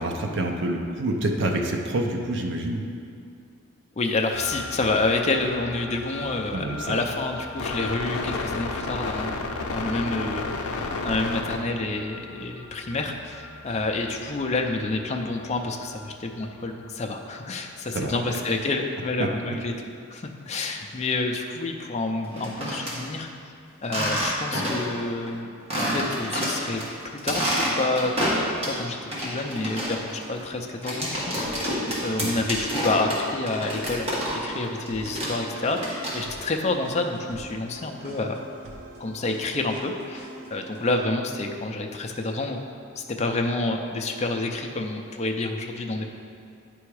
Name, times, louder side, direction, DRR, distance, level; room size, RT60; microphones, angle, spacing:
voice 1, 0.0-2.8 6.5-7.1 17.9-18.4 19.2-19.3 32.2-32.3, right 1 dB, 55° right, 2 dB, 0.6 m, -27 dB
voice 2, 4.0-9.3 9.7-19.7 20.1-23.3 23.8-26.8 27.2-28.1 28.6-34.2 34.4-38.4 39.0-42.6 43.0-46.1, left 2 dB, 30° left, 3 dB, 0.5 m, -28 dB
sound 1, 4.3-16.1 16.4-16.5 16.7-17.0 17.4-17.6, left 3 dB, 90° left, 0.6 m, -34 dB
sound 2, 22.2-23.0 23.8-25.0 25.3-25.4 25.7-26.8 27.2-28.8 29.1-34.6 34.9-36.5, equal, 30° right, 1.4 m, -28 dB
sound 3, 31.4-41.0, right 2 dB, 85° right, 0.9 m, -44 dB
9.3 x 3.5 x 4.8 m, 2.4 s
head